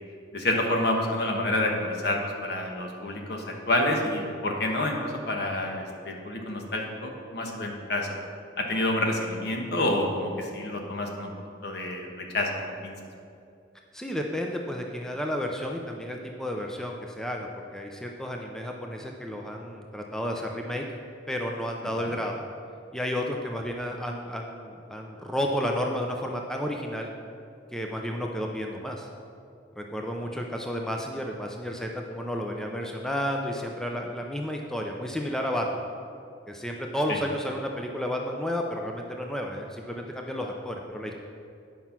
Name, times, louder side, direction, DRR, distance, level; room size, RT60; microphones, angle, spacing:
voice 1, 0.3-8.2 8.6-11.3 11.6-12.5 12.8-13.0 22.0-22.1 37.1-37.2, left 1 dB, 60° left, 1 dB, 1.3 m, -28 dB
voice 2, 13.9-20.8 21.3-22.4 22.9-27.1 27.7-29.1 29.8-35.8 36.5-41.2, equal, 5° left, 1 dB, 0.5 m, -32 dB
9.4 x 5.6 x 5.9 m, 2.4 s
head